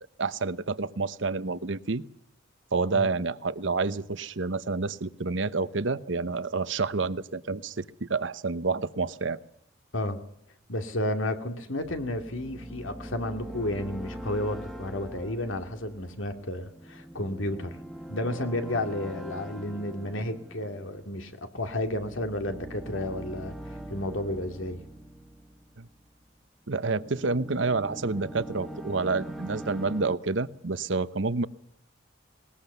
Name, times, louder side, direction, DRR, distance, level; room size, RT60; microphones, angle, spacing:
voice 1, 0.2-2.0 2.7-9.4 25.8-25.9 26.7-31.5, right 3 dB, 70° right, 15 dB, 0.9 m, -29 dB
voice 2, 10.7-17.8 18.1-24.8, left 1 dB, 75° left, 7 dB, 2.4 m, -32 dB
sound 1, 11.8-26.1 26.6-30.2, right 1 dB, ahead, 1.2 m, -42 dB
20.0 x 20.0 x 6.8 m, 0.75 s
head